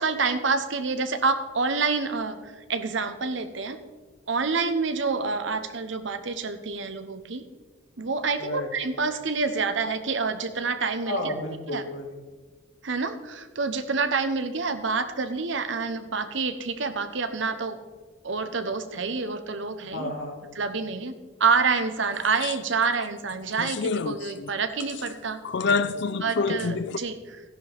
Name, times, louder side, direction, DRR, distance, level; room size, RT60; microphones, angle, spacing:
voice 1, 0.0-3.8 4.3-7.4 8.0-11.3 11.7-11.8 12.8-17.8 18.2-20.1 20.5-21.1 21.4-25.4 26.2-27.4, right 4 dB, 65° right, 10 dB, 0.9 m, -27 dB
voice 2, 11.1-12.1 19.9-20.4 25.6-26.1, left 1 dB, 80° left, -1 dB, 2.4 m, -33 dB
sound 1, 22.4-22.6 23.0-23.1 23.6-24.5 24.8-25.1 25.4-27.0, left 4 dB, 60° left, 0.5 m, -27 dB
14.5 x 11.0 x 3.5 m, 1.4 s
head